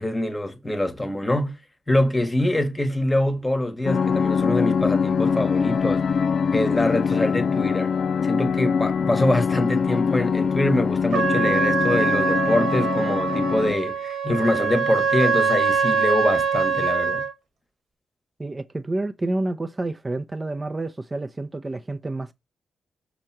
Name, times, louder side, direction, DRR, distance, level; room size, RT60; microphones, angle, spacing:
voice 1, 0.0-1.6 1.9-6.1 6.5-7.9 8.2-17.2, left 1 dB, 10° left, 1.1 m, -24 dB
sound 1, 3.8-13.7, left 6 dB, 60° left, 0.5 m, -23 dB
Trumpet, 11.1-17.3, right 5 dB, 75° right, 1.3 m, -23 dB
voice 2, 18.4-22.3, right 2 dB, 20° right, 0.6 m, -29 dB
6.5 x 3.0 x 5.8 m
wide cardioid pair, 125°, 0 cm